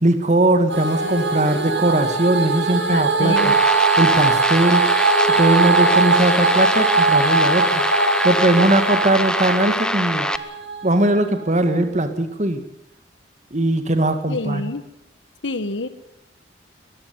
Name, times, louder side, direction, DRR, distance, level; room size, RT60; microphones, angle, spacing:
voice 1, 0.0-3.5 4.0-4.8 5.4-7.8 8.2-10.3 10.8-12.6 13.5-14.6, right 1 dB, 40° right, 8 dB, 1.9 m, -19 dB
sound 1, 0.7-10.9, right 3 dB, 85° right, 5.7 m, -20 dB
voice 2, 1.0-1.6 2.7-3.6 14.3-14.8 15.4-15.9, left 2 dB, 80° left, 12 dB, 1.5 m, -28 dB
sound 2, 3.4-10.4, left 1 dB, 5° left, 0.8 m, -24 dB
21.5 x 14.5 x 9.5 m, 0.82 s
head